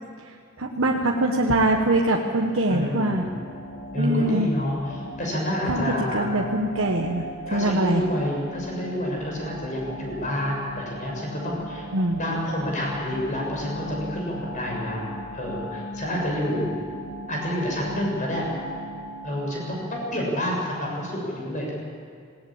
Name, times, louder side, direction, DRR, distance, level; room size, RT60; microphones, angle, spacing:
voice 1, 0.6-3.3 4.0-4.5 5.7-7.2 7.5-8.0 11.9-12.2, right 1 dB, 70° right, 1 dB, 1.3 m, -23 dB
sound 1, 1.5-20.4, equal, 80° left, 2.3 m, -38 dB
voice 2, 2.7-3.4 3.9-6.3 7.5-11.9 12.2-15.0 15.3-16.8 17.3-18.5 19.2-21.7, equal, 40° left, -2 dB, 6.8 m, -28 dB
18.5 x 18.5 x 8.8 m, 2.3 s
head